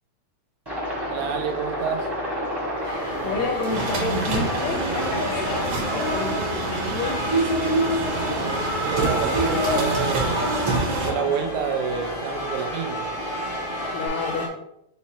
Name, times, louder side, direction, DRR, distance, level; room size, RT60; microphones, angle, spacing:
Aircraft, 0.7-14.1, equal, 20° right, 0.7 m, -33 dB
voice 1, 1.1-2.1 8.2-10.5 11.1-13.1, right 7 dB, 85° right, 5 dB, 2.1 m, -29 dB
sound 1, 2.8-14.5, equal, 45° left, 0.6 m, -28 dB
sound 2, 2.9-11.1, right 3 dB, 65° right, 1.7 m, -28 dB
voice 2, 3.2-5.7 5.9-7.2 13.9-14.5, left 4 dB, 75° left, 3 dB, 1.7 m, -29 dB
5.6 x 2.1 x 4.1 m, 0.78 s
omnidirectional pair, 3.4 m